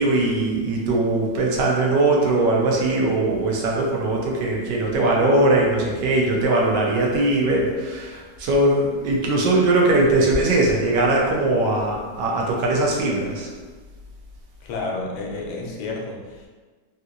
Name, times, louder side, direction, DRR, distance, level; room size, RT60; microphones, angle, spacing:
voice 1, 0.0-13.5, right 2 dB, 85° right, -1 dB, 1.3 m, -20 dB
voice 2, 14.6-16.5, left 3 dB, 85° left, -1 dB, 1.2 m, -30 dB
3.5 x 2.8 x 2.4 m, 1.4 s
omnidirectional pair, 1.8 m